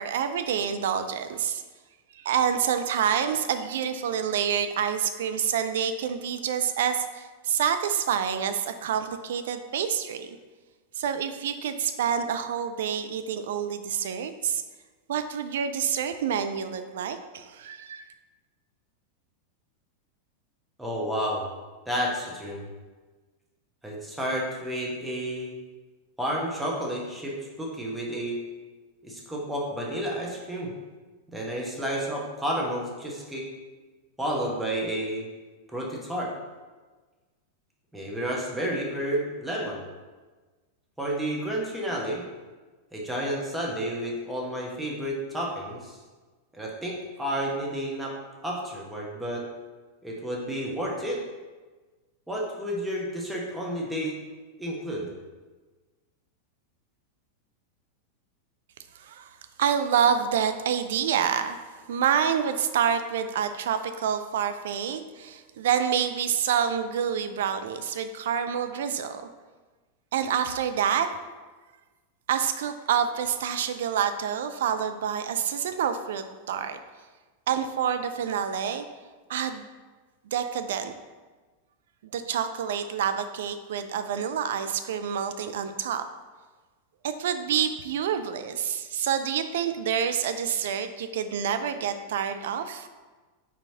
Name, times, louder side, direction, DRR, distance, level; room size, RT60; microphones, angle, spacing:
voice 1, 0.0-1.6 2.1-10.4 11.0-14.6 15.1-18.0 59.0-59.3 59.6-61.6 61.9-69.2 70.1-71.1 72.3-76.8 77.5-78.8 79.3-79.7 80.3-80.9 82.1-86.1 87.0-92.9, right 8 dB, 60° right, 9 dB, 0.3 m, -27 dB
voice 2, 20.8-21.5 21.9-22.7 23.8-25.5 26.2-28.4 29.0-30.7 31.3-33.5 34.2-35.2 35.7-36.3 37.9-39.8 41.0-42.2 42.9-46.0 46.5-48.1 48.4-49.5 50.0-51.2 52.3-54.2 54.6-55.1, right 1 dB, 5° right, -3 dB, 0.9 m, -31 dB
4.5 x 4.2 x 2.8 m, 1.3 s
figure-of-eight pair, 90°, 0 cm